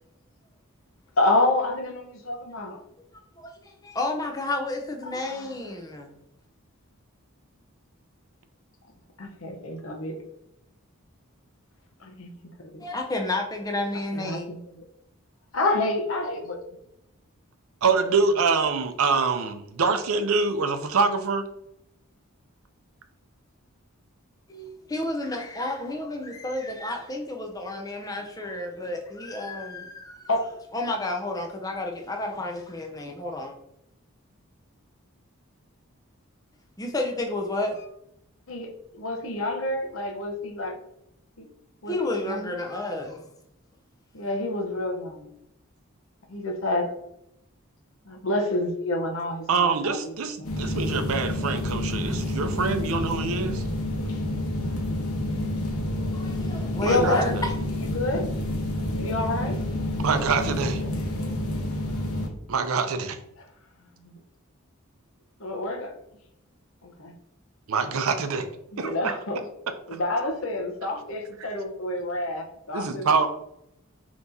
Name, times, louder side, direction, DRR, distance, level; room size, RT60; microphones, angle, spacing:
voice 1, 1.2-2.8 5.0-5.5 9.2-10.2 12.0-12.3 12.7-12.8 14.1-14.8 15.5-16.6 30.3-30.4 38.5-40.8 41.4-41.5 41.8-42.5 44.1-45.3 46.3-46.9 48.1-49.7 50.0-50.1 50.4-50.5 56.8-57.3 57.8-58.2 59.0-59.6 64.0-64.1 65.4-65.9 66.8-67.1 68.7-69.4 69.9-73.1, left 2 dB, 65° left, 3 dB, 0.8 m, -28 dB
voice 2, 3.4-6.1 12.8-14.5 24.5-30.3 30.7-33.6 36.8-37.9 41.8-43.2 56.1-57.5, left 2 dB, 15° left, 2 dB, 0.6 m, -31 dB
voice 3, 17.8-21.4 49.5-53.6 56.9-57.5 60.0-60.8 62.5-63.2 67.7-68.5 68.8-69.2 72.7-73.3, right 4 dB, 75° right, 8 dB, 0.5 m, -25 dB
sound 1, 50.4-62.3, left 1 dB, 85° left, 1.0 m, -29 dB
5.7 x 3.0 x 2.7 m, 0.81 s
head